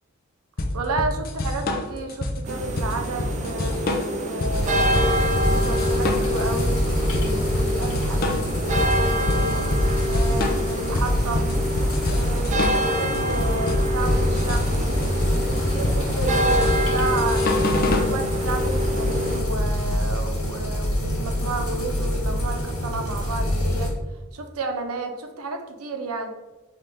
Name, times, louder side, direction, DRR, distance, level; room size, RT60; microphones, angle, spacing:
sound 1, 0.6-18.1, left 2 dB, 45° left, 0.5 m, -27 dB
voice 1, 0.7-5.0 5.5-9.6 10.1-11.5 12.1-14.7 15.0-17.4 17.8-23.9 24.3-26.3, right 3 dB, 85° right, 5 dB, 0.6 m, -32 dB
sound 2, 2.4-19.4, equal, 35° right, 0.5 m, -27 dB
sound 3, 4.5-23.9, equal, 85° left, 1.4 m, -25 dB
3.5 x 3.2 x 4.0 m, 1.1 s
head